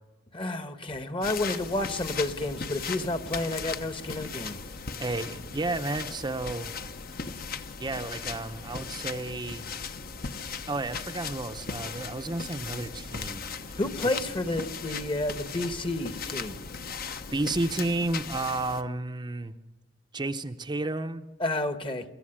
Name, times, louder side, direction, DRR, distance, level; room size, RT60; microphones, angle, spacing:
voice 1, 0.3-4.6 13.8-16.6 21.4-22.0, left 2 dB, 30° left, 9 dB, 1.2 m, -30 dB
sound 1, 1.2-18.8, left 5 dB, 50° left, 1.0 m, -38 dB
voice 2, 5.0-6.7 7.8-9.7 10.7-13.4 17.3-19.6 20.1-21.3, right 2 dB, 25° right, 7 dB, 0.7 m, -32 dB
23.0 x 14.5 x 10.0 m, 1.2 s
head